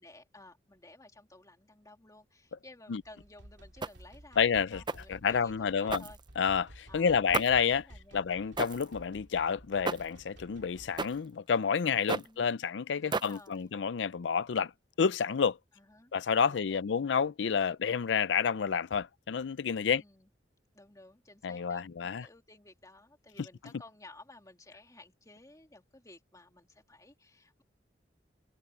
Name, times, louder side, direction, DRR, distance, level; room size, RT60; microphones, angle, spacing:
voice 1, 0.0-6.2 6.9-8.4 12.1-12.6 13.0-13.7 15.7-16.1 16.5-16.9 19.8-20.3 20.7-27.6, left 2 dB, 20° left, 2.6 m, -55 dB
sound 1, 3.0-11.2, right 1 dB, 75° right, 2.3 m, -54 dB
sound 2, 3.8-4.2 4.9-5.2 5.9-6.6 7.3-7.7 8.6-8.9 9.8-10.2 11.0-11.3 12.1-12.4 13.1-13.6, right 4 dB, 25° right, 0.6 m, -35 dB
voice 2, 4.4-6.0 6.4-7.9 8.1-14.7 15.0-15.6 16.1-20.0 21.4-22.3, left 6 dB, 75° left, 0.5 m, -29 dB
head